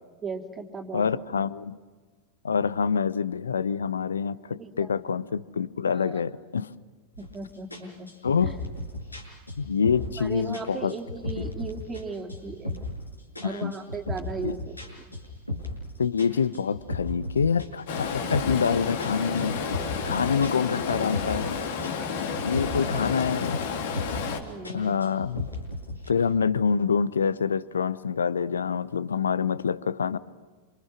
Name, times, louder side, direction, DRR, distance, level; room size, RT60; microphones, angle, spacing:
voice 1, 0.2-1.2 4.6-5.0 5.9-6.2 7.3-8.1 8.4-8.5 10.2-12.8 13.4-15.1 20.2-20.3 20.9-21.2 22.6-23.3 24.4-25.0, right 4 dB, 20° right, 2 dB, 2.8 m, -37 dB
voice 2, 0.9-1.8 2.4-6.7 8.2-8.6 9.6-10.9 13.4-13.8 14.4-14.6 16.0-19.5 20.1-21.6 22.4-23.6 24.7-25.5 26.1-30.2, left 6 dB, 70° left, 19 dB, 0.8 m, -26 dB
sound 1, 7.1-7.4 7.7-10.2 10.5-12.0 12.3-13.0 13.3-15.9 16.2-18.7 19.0-21.5 21.8-23.3 23.6-24.3 24.6-26.1, left 2 dB, 85° left, 6.3 m, -35 dB
Stream, 17.9-24.4, left 6 dB, 55° left, 3.2 m, -31 dB
28.5 x 28.0 x 6.3 m, 1.4 s
figure-of-eight pair, 90°, 0 cm